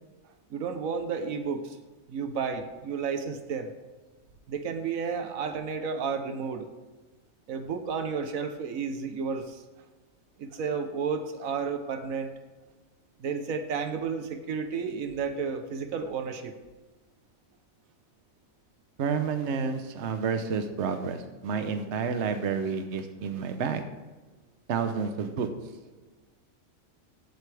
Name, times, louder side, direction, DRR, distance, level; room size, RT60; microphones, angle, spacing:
voice 1, 0.5-1.8 2.1-3.7 4.5-6.7 7.5-9.6 10.4-12.3 13.2-16.5, right 5 dB, 75° right, 8 dB, 1.3 m, -32 dB
voice 2, 19.0-23.8 24.7-25.5, right 6 dB, 60° right, 8 dB, 1.1 m, -30 dB
15.0 x 8.0 x 3.4 m, 1.2 s
omnidirectional pair, 1.4 m